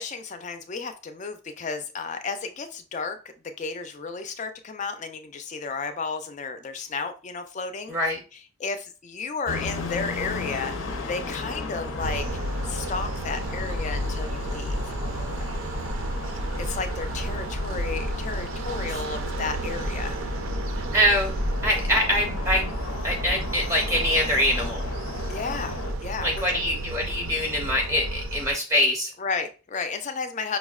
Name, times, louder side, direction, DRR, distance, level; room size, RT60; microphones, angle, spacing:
voice 1, 0.0-3.2 3.6-7.9 8.3-12.3 12.6-15.0 16.6-20.2 21.9-22.0 25.3-26.6 29.2-30.6, left 4 dB, 35° left, 8 dB, 0.4 m, -33 dB
voice 2, 7.9-8.2 18.9-19.0 20.9-21.3 21.6-22.7 23.0-24.8 26.2-29.1, equal, 15° right, 1 dB, 0.6 m, -24 dB
sound 1, 9.5-25.9, left 2 dB, 90° left, 0.6 m, -35 dB
sound 2, 12.0-28.5, right 1 dB, 80° right, 0.4 m, -31 dB
5.1 x 2.1 x 2.3 m, 0.35 s
head